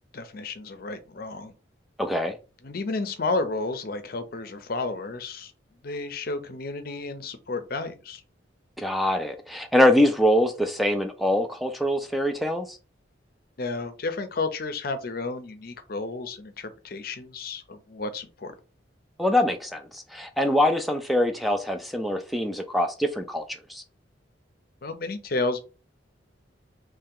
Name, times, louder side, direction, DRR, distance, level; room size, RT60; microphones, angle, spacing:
voice 1, 0.1-1.5 2.6-5.5 5.8-8.2 13.6-18.5 24.8-25.6, left 3 dB, 50° left, 0.6 m, -32 dB
voice 2, 2.0-2.3 8.8-12.8 19.2-23.4 23.7-23.8, left 1 dB, ahead, 0.3 m, -24 dB
3.1 x 2.9 x 3.6 m
head